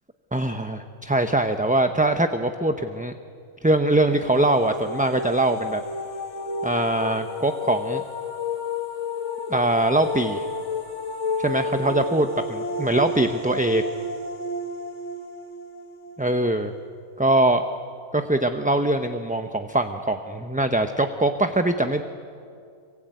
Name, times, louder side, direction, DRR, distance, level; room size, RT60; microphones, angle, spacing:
voice 1, 0.3-3.1 3.6-5.8 6.6-8.0 9.5-10.4 11.4-13.8 16.2-16.7 17.2-17.6 18.1-22.0, right 1 dB, 10° right, 6 dB, 0.7 m, -22 dB
sound 1, 4.0-16.8, left 2 dB, 80° left, 2.2 m, -31 dB
26.0 x 24.0 x 9.3 m, 2.4 s
omnidirectional pair, 1.2 m